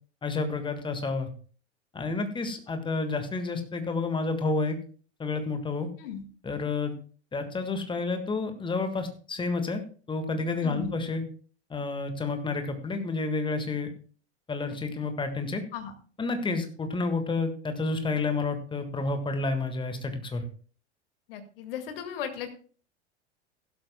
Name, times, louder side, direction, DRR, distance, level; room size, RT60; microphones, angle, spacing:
voice 1, 0.2-1.3 1.9-4.8 5.2-5.9 6.4-6.9 7.3-9.8 10.1-11.2 11.7-13.9 14.5-15.6 16.2-20.4, left 3 dB, 15° left, 7 dB, 1.6 m, -30 dB
voice 2, 21.3-22.5, left 8 dB, 55° left, 7 dB, 2.0 m, -36 dB
15.5 x 12.5 x 2.2 m, 0.40 s
figure-of-eight pair, 85°, 34 cm